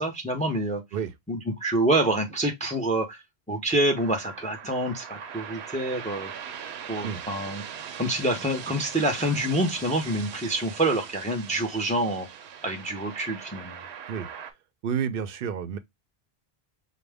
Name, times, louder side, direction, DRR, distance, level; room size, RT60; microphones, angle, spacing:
voice 1, 0.0-0.8 1.3-3.2 3.5-6.3 6.9-7.6 8.0-12.3 12.6-13.8, right 1 dB, 10° left, 0.6 m, -27 dB
sound 1, 3.9-14.5, right 8 dB, 90° right, 0.9 m, -41 dB
voice 2, 14.8-15.8, right 7 dB, 65° right, 0.7 m, -30 dB
4.9 x 2.1 x 3.3 m
omnidirectional pair, 1.1 m